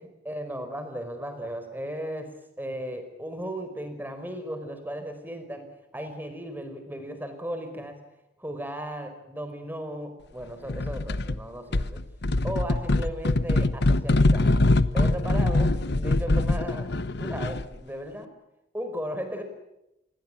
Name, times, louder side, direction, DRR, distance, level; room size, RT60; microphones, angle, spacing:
voice 1, 0.2-2.3 2.6-5.7 5.9-8.0 8.4-12.0 12.4-14.5 14.9-16.9 17.2-18.3 18.7-19.4, equal, 10° right, 8 dB, 4.9 m, -36 dB
sound 1, 10.7-11.4 11.7-17.8, left 2 dB, 60° left, 1.0 m, -23 dB
27.5 x 21.5 x 9.1 m, 0.89 s
head